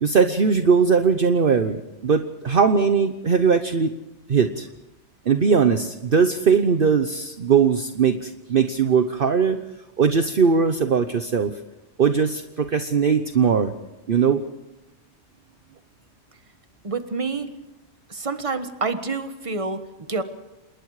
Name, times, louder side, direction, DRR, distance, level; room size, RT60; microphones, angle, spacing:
voice 1, 0.0-3.9 4.3-4.7 5.3-9.6 10.0-11.6 12.0-13.7 14.1-14.4, right 6 dB, 50° right, 8 dB, 1.1 m, -20 dB
voice 2, 16.8-17.5 18.1-20.2, right 4 dB, 30° right, 9 dB, 1.5 m, -28 dB
27.0 x 21.0 x 4.9 m, 0.98 s
omnidirectional pair, 1.2 m